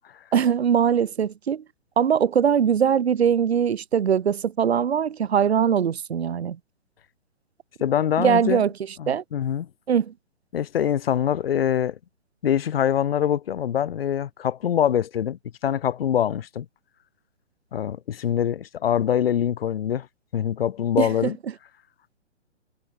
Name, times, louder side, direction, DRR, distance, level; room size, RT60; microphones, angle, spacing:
voice 1, 0.3-1.6 2.0-6.6 8.2-8.7 9.1-9.2 9.9-10.1 21.0-21.3, right 8 dB, 60° right, 3.5 m, -21 dB
voice 2, 7.8-8.6 9.0-9.7 10.5-12.0 12.4-16.7 17.7-20.1 20.3-21.4, left 9 dB, 50° left, 2.8 m, -24 dB
figure-of-eight pair, 130°, 36 cm